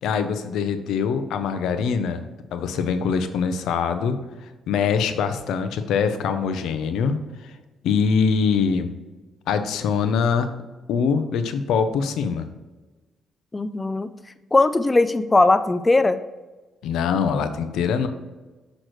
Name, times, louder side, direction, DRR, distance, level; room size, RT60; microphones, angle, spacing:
voice 1, 0.0-2.2 2.5-4.2 4.7-7.2 7.8-8.9 9.5-10.5 10.9-12.5 16.8-18.1, left 6 dB, 85° left, 9 dB, 0.6 m, -23 dB
voice 2, 13.5-14.1 14.5-16.2, left 2 dB, 20° left, 11 dB, 0.4 m, -19 dB
6.4 x 6.0 x 3.1 m, 1.2 s
cardioid pair, 90°, 0 cm